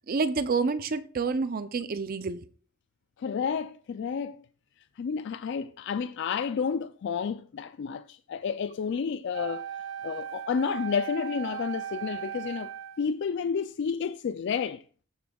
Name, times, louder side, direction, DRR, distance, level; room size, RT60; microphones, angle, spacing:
voice 1, 0.1-2.4, right 4 dB, 45° right, 0.5 m, -28 dB
voice 2, 3.2-4.5 5.0-9.7 10.0-12.7 13.0-14.8, left 6 dB, 55° left, 0.3 m, -30 dB
Wind instrument woodwind instrument, 9.3-13.1, right 9 dB, 90° right, 0.9 m, -37 dB
18.5 x 6.9 x 2.3 m
head